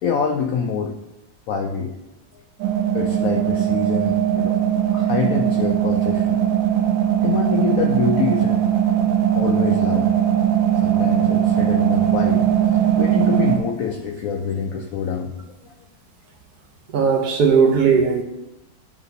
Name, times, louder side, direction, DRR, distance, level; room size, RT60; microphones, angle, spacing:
voice 1, 0.0-0.9 1.5-1.9 2.3-2.4 2.9-4.6 4.9-6.4 7.2-8.6 9.4-10.1 10.8-12.4 13.0-15.3 15.6-15.7, left 6 dB, 85° left, 4 dB, 0.7 m, -25 dB
sound 1, 2.6-13.6, right 10 dB, 90° right, 1.3 m, -19 dB
voice 2, 16.9-18.2, right 6 dB, 65° right, 3 dB, 1.1 m, -17 dB
10.0 x 3.9 x 2.7 m, 0.91 s
omnidirectional pair, 2.0 m